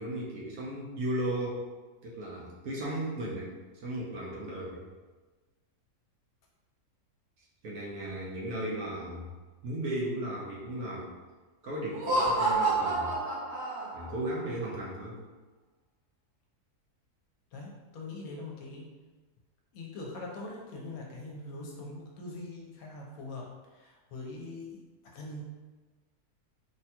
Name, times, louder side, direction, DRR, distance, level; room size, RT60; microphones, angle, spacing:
voice 1, 0.0-1.6 2.0-3.5 3.8-4.8 7.6-9.3 9.6-11.1 11.6-13.1 13.9-15.2, right 1 dB, 70° right, -5 dB, 1.1 m, -35 dB
Laughter, 11.9-14.2, right 2 dB, 85° right, 1.5 m, -29 dB
voice 2, 17.5-18.9 19.7-24.8 25.1-25.4, left 2 dB, 75° left, -1 dB, 1.1 m, -42 dB
3.2 x 2.3 x 2.8 m, 1.3 s
omnidirectional pair, 1.6 m